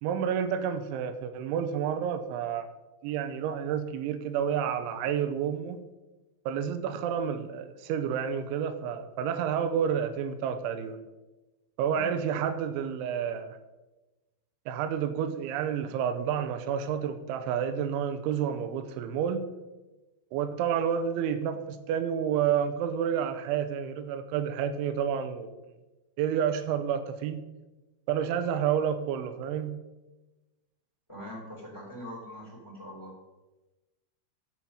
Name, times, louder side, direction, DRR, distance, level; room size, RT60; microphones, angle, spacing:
voice 1, 0.0-2.7 3.0-5.8 6.5-11.0 11.8-13.6 14.7-19.5 20.3-25.5 26.2-27.5 28.1-29.8, right 8 dB, 85° right, 10 dB, 3.2 m, -30 dB
voice 2, 31.1-33.1, equal, 10° left, -1 dB, 2.0 m, -42 dB
10.5 x 7.4 x 5.5 m, 1.1 s
omnidirectional pair, 5.4 m